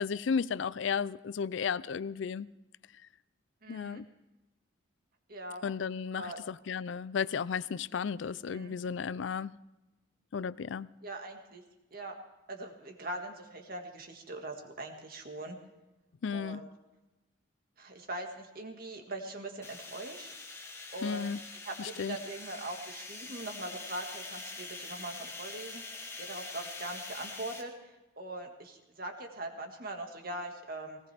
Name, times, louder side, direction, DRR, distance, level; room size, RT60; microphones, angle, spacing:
voice 1, 0.0-2.5 3.7-4.1 5.6-9.6 10.3-10.9 16.2-16.6 21.0-21.4 21.8-22.2, left 6 dB, 65° left, 0.4 m, -34 dB
voice 2, 3.6-4.0 5.3-5.6 6.1-6.4 8.5-8.8 11.0-11.6 11.9-12.2 12.5-15.6 16.3-16.7 17.8-20.3 20.9-21.4 21.6-31.0, right 2 dB, 50° right, 1.9 m, -41 dB
sound 1, 19.6-27.6, left 3 dB, 15° left, 1.4 m, -44 dB
18.5 x 18.0 x 3.5 m
head